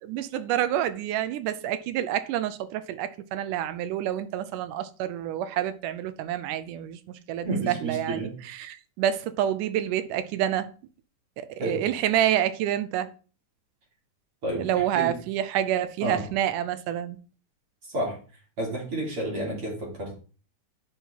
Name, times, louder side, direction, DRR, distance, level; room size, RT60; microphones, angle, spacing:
voice 1, 0.0-8.2 8.4-10.7 11.4-13.1 14.6-17.2, right 11 dB, 80° right, 2.1 m, -28 dB
voice 2, 7.4-8.4 11.6-11.9 14.4-15.1 16.0-16.2 17.9-18.2 18.6-20.2, right 1 dB, 40° right, 4.0 m, -30 dB
10.5 x 5.5 x 2.9 m
omnidirectional pair, 3.7 m